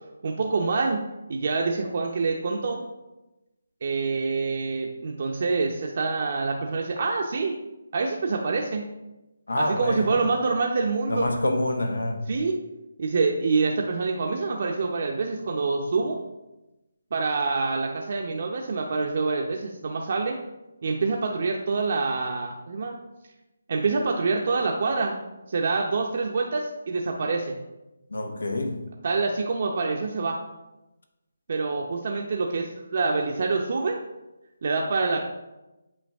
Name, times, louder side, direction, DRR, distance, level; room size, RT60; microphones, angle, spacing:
voice 1, 0.2-1.0 1.3-2.8 3.8-7.6 7.9-8.9 9.6-11.3 12.3-12.6 13.0-16.2 17.1-20.4 20.8-22.9 23.7-25.2 25.5-27.5 29.0-30.4 31.5-34.0 34.6-35.2, right 4 dB, 50° right, 0 dB, 0.7 m, -26 dB
voice 2, 9.5-10.3 11.1-12.3 28.1-28.9, left 1 dB, 90° left, 5 dB, 1.1 m, -27 dB
7.7 x 4.5 x 3.5 m, 0.98 s
figure-of-eight pair, 160°, 0 cm